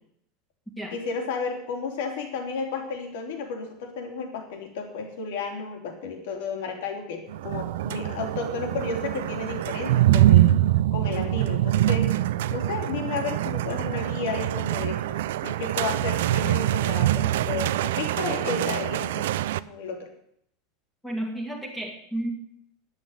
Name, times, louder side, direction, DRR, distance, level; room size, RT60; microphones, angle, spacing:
voice 1, 0.9-10.5 10.9-12.1 12.5-19.3 19.7-20.1, left 4 dB, 70° left, 3 dB, 3.6 m, -32 dB
heavy rain with huge thunder nearby, 7.3-19.6, right 14 dB, 90° right, 0.5 m, -24 dB
voice 2, 21.0-22.3, right 1 dB, 5° left, 1 dB, 2.1 m, -32 dB
10.5 x 8.5 x 9.2 m, 0.71 s
supercardioid pair, 175°, 0 cm